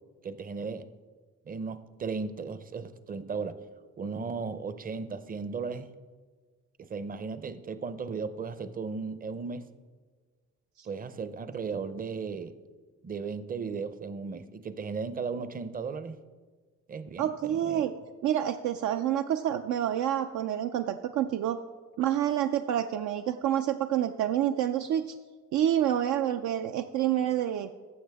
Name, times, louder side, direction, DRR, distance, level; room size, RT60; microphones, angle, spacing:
voice 1, 0.2-0.9 1.5-3.6 4.0-5.9 6.9-9.7 10.9-12.5 13.0-16.2 16.9-17.8, right 5 dB, 30° right, 13 dB, 0.6 m, -36 dB
voice 2, 17.2-17.9 18.2-21.6 22.0-25.2 25.5-27.7, right 11 dB, 75° right, 7 dB, 0.5 m, -28 dB
15.0 x 6.3 x 3.5 m, 1.5 s
cardioid pair, 90°, 30 cm